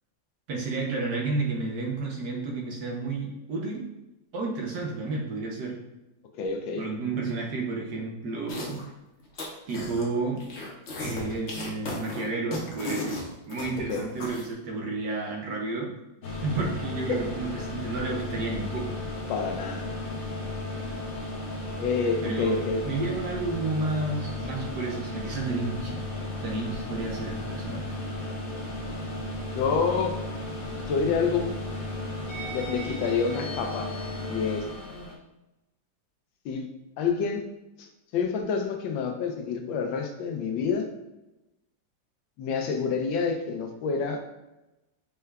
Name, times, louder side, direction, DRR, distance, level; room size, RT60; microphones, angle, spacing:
voice 1, 0.5-3.9 4.3-5.8 6.8-8.8 9.7-10.4 11.0-13.2 13.5-15.9 16.4-19.0 22.2-22.5 22.8-26.0 26.4-28.0, right 3 dB, 70° right, 0 dB, 1.3 m, -31 dB
voice 2, 6.3-6.8 13.9-14.0 17.1-17.2 19.3-19.8 21.8-22.8 29.5-30.1 30.8-31.6 32.5-33.9 34.3-34.6 36.4-36.7 37.0-37.5 37.8-37.9 38.1-40.9 42.4-44.2, left 5 dB, 90° left, 5 dB, 1.4 m, -27 dB
sound 1, 8.5-8.9 9.2-10.0 10.4-14.4, left 2 dB, 55° left, 0.8 m, -36 dB
sound 2, 16.2-35.1, left 2 dB, 75° left, 0.5 m, -34 dB
5.4 x 2.3 x 3.3 m, 0.97 s
omnidirectional pair, 2.0 m